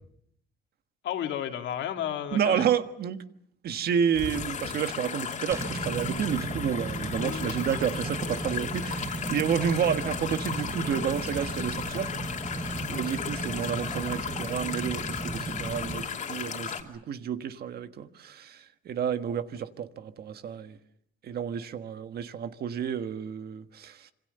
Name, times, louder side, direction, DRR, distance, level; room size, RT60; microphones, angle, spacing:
voice 1, 1.0-2.6 7.2-7.5 9.5-9.7 12.8-13.0, left 10 dB, 70° left, 5 dB, 2.6 m, -33 dB
voice 2, 2.3-3.2 3.6-12.1 12.9-20.8 21.2-24.1, right 8 dB, 50° right, 10 dB, 1.5 m, -30 dB
sound 1, 4.1-16.8, left 7 dB, 40° left, 2.9 m, -35 dB
sound 2, 5.5-16.1, right 3 dB, 15° right, 1.0 m, -36 dB
26.5 x 26.5 x 6.7 m, 0.69 s
cardioid pair, 175°, 20 cm